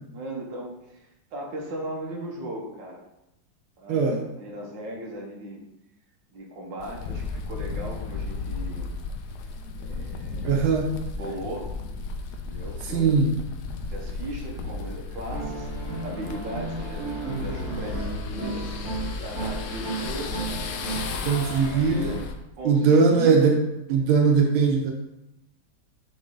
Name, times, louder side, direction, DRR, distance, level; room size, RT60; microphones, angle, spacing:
voice 1, 0.1-1.0 1.3-3.0 3.8-4.1 4.4-5.6 6.3-8.9 9.8-10.7 11.1-11.7 12.4-13.3 13.9-15.7 16.0-18.7 19.2-20.5 21.5-22.2 22.6-23.5, right 1 dB, 70° right, -1 dB, 1.8 m, -37 dB
voice 2, 3.9-4.3 10.4-11.0 12.8-13.4 21.2-22.2 22.6-23.6 23.9-24.9, right 5 dB, 90° right, 1 dB, 1.6 m, -20 dB
sound 1, 6.8-22.3, left 4 dB, 70° left, 1.1 m, -34 dB
sound 2, 15.3-22.2, right 4 dB, 40° right, 3.0 m, -35 dB
9.4 x 3.2 x 3.8 m, 0.89 s
omnidirectional pair, 2.1 m